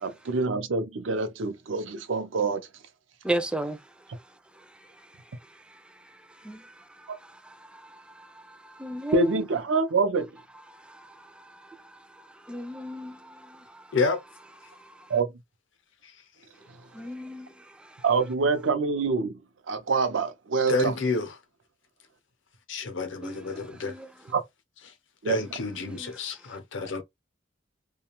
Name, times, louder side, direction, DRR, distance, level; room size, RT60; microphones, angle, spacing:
voice 1, 0.0-2.7 9.1-10.3 15.1-15.3 16.7-16.8 18.0-19.4 19.7-20.9 24.3-24.4 25.2-25.4, right 4 dB, 85° right, 0.5 m, -26 dB
voice 2, 3.2-3.8 4.6-4.7 5.5-5.8 6.4-7.3 7.6-9.4 10.7-13.9 14.6-15.1 16.9-18.0 23.2-24.1 25.9-26.1, right 1 dB, 5° right, 0.3 m, -36 dB
voice 3, 20.7-21.3 22.7-23.9 25.2-27.0, left 3 dB, 70° left, 0.6 m, -29 dB
2.4 x 2.2 x 2.9 m
head